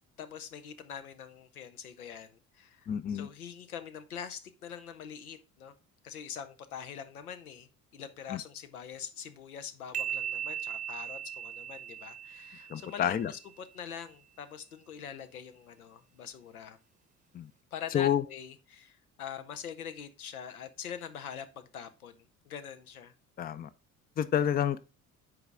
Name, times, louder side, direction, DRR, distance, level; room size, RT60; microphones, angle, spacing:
voice 1, 0.2-5.7 6.0-16.8 17.7-22.1 22.5-23.1, left 8 dB, 80° left, 0.8 m, -44 dB
voice 2, 2.9-3.3 8.3-8.4 12.7-13.3 17.3-17.5 17.9-18.2 23.4-23.7 24.2-24.8, left 9 dB, 20° left, 0.5 m, -29 dB
sound 1, 9.9-13.5, right 9 dB, 15° right, 0.8 m, -38 dB
7.9 x 4.9 x 3.3 m
figure-of-eight pair, 55°, 44 cm